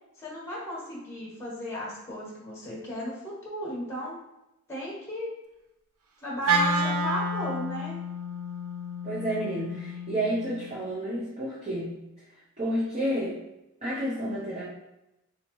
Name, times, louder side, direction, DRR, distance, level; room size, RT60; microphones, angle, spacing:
voice 1, 0.2-4.2 4.7-5.3 6.2-8.0, left 1 dB, 10° left, -6 dB, 1.1 m, -35 dB
Wind instrument woodwind instrument, 6.4-10.7, right 1 dB, 75° right, 0.5 m, -30 dB
voice 2, 9.0-12.0 12.6-13.4 13.8-14.6, right 1 dB, 30° right, -7 dB, 0.7 m, -30 dB
3.5 x 2.8 x 3.0 m, 0.90 s
head